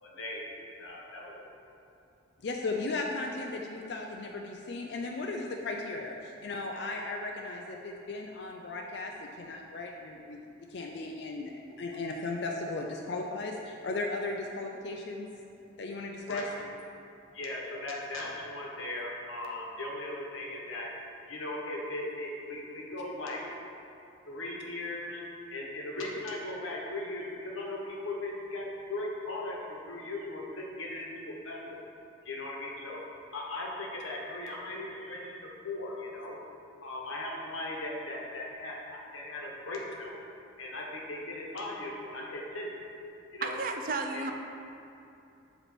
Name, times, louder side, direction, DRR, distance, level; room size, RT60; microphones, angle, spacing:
voice 1, 0.0-1.5 16.3-16.5 17.3-20.9 21.3-23.4 24.3-25.2 25.5-31.6 32.2-33.0 33.3-36.4 36.8-40.2 40.6-42.7 43.3-43.6 44.1-44.3, left 2 dB, 90° left, -2 dB, 1.2 m, -38 dB
voice 2, 2.4-10.4 10.7-15.3 15.8-16.4, left 3 dB, 60° left, 1 dB, 0.4 m, -36 dB
voice 3, 43.4-44.3, right 3 dB, 45° right, 4 dB, 0.4 m, -32 dB
7.9 x 3.1 x 5.9 m, 2.7 s
head